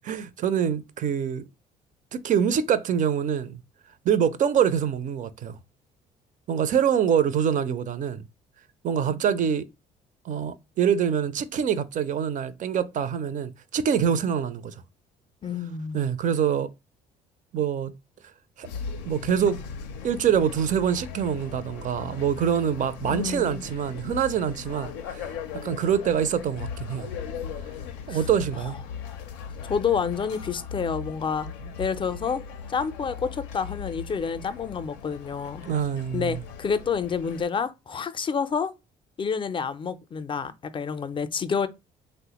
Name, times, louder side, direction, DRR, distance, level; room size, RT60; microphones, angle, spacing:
voice 1, 0.0-1.4 2.1-3.6 4.0-5.6 6.5-8.3 8.8-9.7 10.3-14.7 15.9-16.7 17.5-17.9 18.6-18.7 19.1-19.6 20.0-25.3 25.6-27.1 28.1-28.8 35.7-36.4, right 8 dB, 50° right, 0.4 m, -25 dB
voice 2, 15.4-16.1 23.1-23.7 28.1-28.2 29.6-31.5 31.8-32.4 32.7-35.6 36.1-38.7 39.2-41.7, left 6 dB, 30° left, 0.4 m, -28 dB
sound 1, 18.6-37.5, left 6 dB, 90° left, 0.4 m, -38 dB
3.3 x 2.0 x 2.9 m
supercardioid pair, 70°, 17 cm